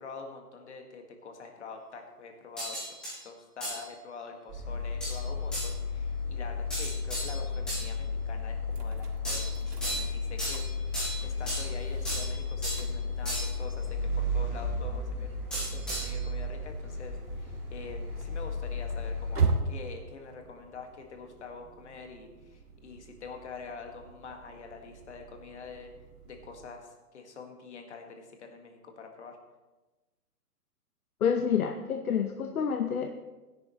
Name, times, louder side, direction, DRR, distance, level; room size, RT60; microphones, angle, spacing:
voice 1, 0.0-3.0 3.2-10.6 11.2-25.9 26.3-29.4, left 4 dB, 45° left, 3 dB, 1.8 m, -45 dB
sound 1, 2.6-3.2 3.6-3.8 5.0-5.2 5.5-5.7 6.7-7.9 9.2-10.1 10.4-11.7 12.0-12.9 13.2-13.6 15.5-16.2, right 1 dB, ahead, 1.1 m, -35 dB
sound 2, 4.5-19.5, left 3 dB, 20° right, 3.1 m, -34 dB
sound 3, 8.7-26.7, right 4 dB, 80° right, 1.9 m, -40 dB
voice 2, 31.2-33.1, left 7 dB, 65° left, 6 dB, 0.9 m, -28 dB
16.5 x 10.5 x 3.1 m, 1.2 s
hypercardioid pair, 175°, 47 cm